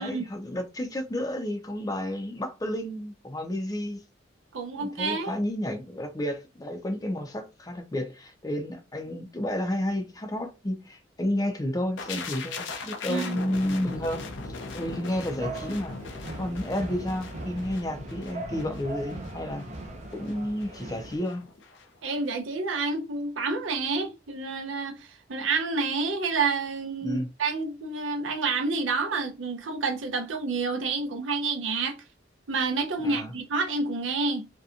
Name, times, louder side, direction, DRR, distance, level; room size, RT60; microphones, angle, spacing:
voice 1, 0.0-4.0 4.7-16.0 16.4-19.6 20.1-21.4 27.0-27.3 33.0-33.3, left 1 dB, 20° left, 0.4 m, -31 dB
voice 2, 4.5-5.3 13.1-13.4 22.0-32.0 32.5-34.5, right 4 dB, 90° right, 0.6 m, -29 dB
sound 1, 12.0-21.8 22.1-22.3, left 3 dB, 75° left, 0.5 m, -39 dB
sound 2, 15.4-21.2, right 2 dB, 40° right, 0.5 m, -40 dB
2.7 x 2.2 x 2.4 m
head